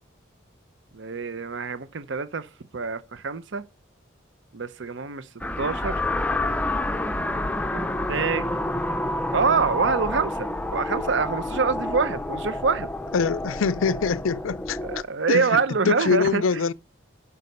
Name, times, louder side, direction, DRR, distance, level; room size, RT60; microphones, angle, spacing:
voice 1, 0.9-2.5 2.7-3.6 4.5-5.3 5.6-6.0 7.7-8.5 9.3-12.9 14.8-16.4, right 5 dB, 65° right, 0.6 m, -25 dB
sound 1, 5.4-15.0, left 1 dB, 5° left, 0.5 m, -29 dB
voice 2, 13.1-14.8 15.3-16.7, left 5 dB, 80° left, 0.5 m, -24 dB
11.0 x 5.5 x 5.3 m
head